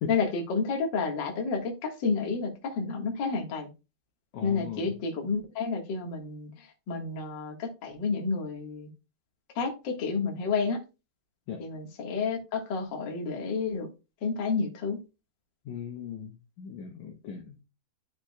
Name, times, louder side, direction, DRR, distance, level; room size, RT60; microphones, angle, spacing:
voice 1, 0.1-3.7 4.4-8.9 9.5-10.8 11.6-13.9 14.2-15.0, left 4 dB, 50° left, 1.4 m, -30 dB
voice 2, 4.3-4.9 11.5-11.6 15.7-17.6, left 7 dB, 75° left, 1.8 m, -38 dB
12.0 x 5.1 x 2.3 m
omnidirectional pair, 4.5 m